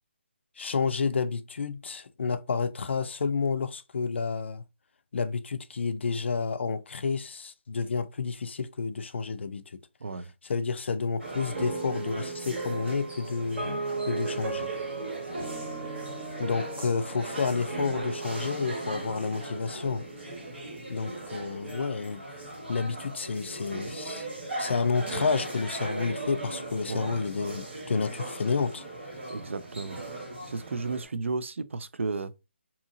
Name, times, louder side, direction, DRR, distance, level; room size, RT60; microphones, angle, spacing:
voice 1, 0.6-4.6 5.1-9.8 10.4-13.6 14.0-14.7 16.4-20.0 20.9-22.2 22.7-24.3 24.6-28.8, left 5 dB, 70° left, 0.3 m, -30 dB
voice 2, 10.0-10.3 26.9-27.1 29.3-30.0 30.5-32.3, right 3 dB, 90° right, 0.4 m, -33 dB
sound 1, 11.2-31.1, right 2 dB, 70° right, 1.5 m, -39 dB
sound 2, 11.5-20.7, right 4 dB, 40° right, 1.1 m, -37 dB
2.7 x 2.7 x 2.5 m
hypercardioid pair, 165°, 7 cm